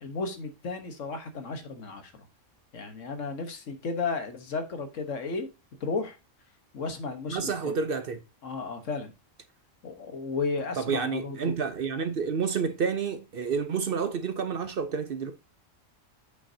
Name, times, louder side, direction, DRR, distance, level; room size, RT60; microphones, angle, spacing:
voice 1, 0.0-2.2 2.7-5.5 5.8-6.2 6.7-7.8 8.4-9.1 9.8-11.6, left 4 dB, 75° left, 1.6 m, -34 dB
voice 2, 7.3-8.2 10.8-15.3, right 6 dB, 55° right, 0.8 m, -29 dB
8.4 x 6.0 x 2.7 m
omnidirectional pair, 1.3 m